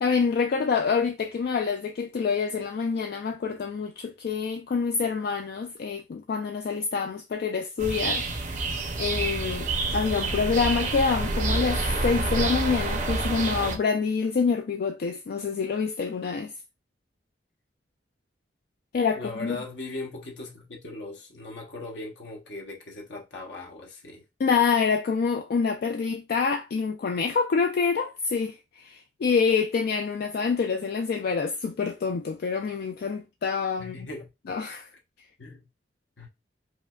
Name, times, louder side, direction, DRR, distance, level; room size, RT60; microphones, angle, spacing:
voice 1, 0.0-16.5 18.9-19.6 24.4-34.1 34.5-34.9, left 5 dB, 55° left, 0.3 m, -27 dB
sound 1, 7.8-13.8, right 3 dB, 45° right, 0.6 m, -28 dB
voice 2, 19.2-24.2 33.8-34.3 35.4-35.7 36.2-36.3, left 2 dB, 75° left, 0.9 m, -39 dB
4.8 x 2.1 x 2.3 m
head